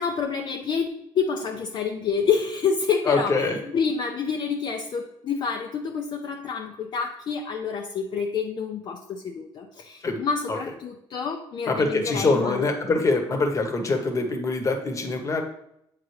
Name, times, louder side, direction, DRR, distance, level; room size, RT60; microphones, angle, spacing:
voice 1, 0.0-3.5 3.7-12.7, left 6 dB, 50° left, 2 dB, 0.6 m, -28 dB
voice 2, 3.1-3.7 10.0-10.2 10.5-10.6 11.7-15.4, left 3 dB, 30° left, 5 dB, 1.1 m, -24 dB
8.2 x 3.7 x 3.2 m, 0.78 s
cardioid pair, 90°, 10 cm